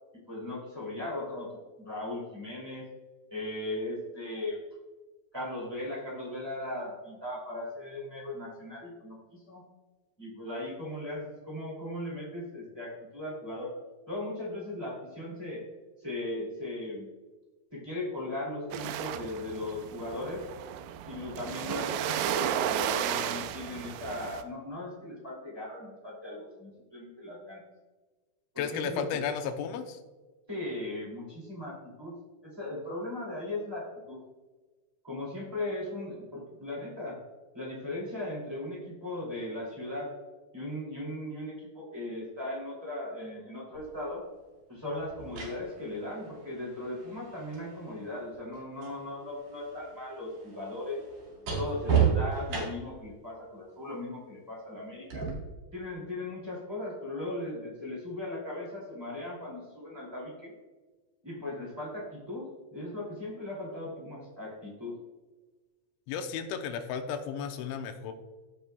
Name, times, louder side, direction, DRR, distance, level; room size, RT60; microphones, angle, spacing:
voice 1, 0.3-1.5 1.8-2.9 3.3-4.6 5.3-9.6 10.2-13.7 14.1-15.6 16.0-17.1 17.7-20.5 21.0-27.6 28.5-29.2 30.5-32.1 32.4-34.2 35.0-37.2 37.5-40.1 40.5-44.2 44.7-51.0 51.5-55.3 55.7-60.5 61.2-65.0, left 1 dB, 10° right, -4 dB, 1.1 m, -38 dB
sound 1, 18.7-24.4, right 10 dB, 80° right, 2.6 m, -33 dB
voice 2, 28.6-30.0 66.1-68.1, left 7 dB, 90° left, 6 dB, 3.1 m, -34 dB
sound 2, 43.7-43.9 45.0-49.0 49.3-53.0 55.1-55.3, right 7 dB, 50° right, 2.6 m, -32 dB
15.5 x 6.8 x 2.3 m, 1.3 s
omnidirectional pair, 5.2 m